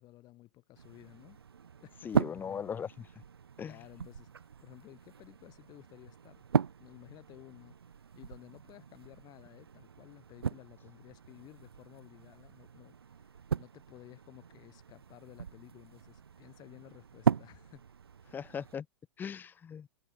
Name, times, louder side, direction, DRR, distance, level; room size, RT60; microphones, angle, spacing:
voice 1, 0.0-1.4 1.8-2.6 3.6-6.4 6.8-7.7 8.2-17.8, left 17 dB, 35° left, 3.8 m, -55 dB
sound 1, 0.7-18.8, right 7 dB, 70° right, 0.7 m, -38 dB
voice 2, 2.0-3.1 3.6-3.8 18.3-18.9 19.2-19.9, left 7 dB, 15° left, 0.6 m, -39 dB
figure-of-eight pair, 100°, 13 cm